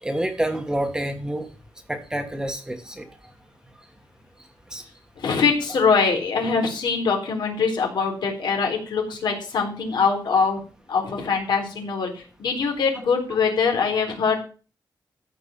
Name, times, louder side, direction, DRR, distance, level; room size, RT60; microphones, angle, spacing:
voice 1, 0.0-1.5 1.9-3.1 4.7-4.8, right 1 dB, 10° right, 5 dB, 1.4 m, -28 dB
voice 2, 5.2-10.6 10.9-14.4, left 5 dB, 75° left, 1 dB, 4.0 m, -23 dB
14.0 x 5.3 x 7.4 m, 0.36 s
wide cardioid pair, 165°, 8 cm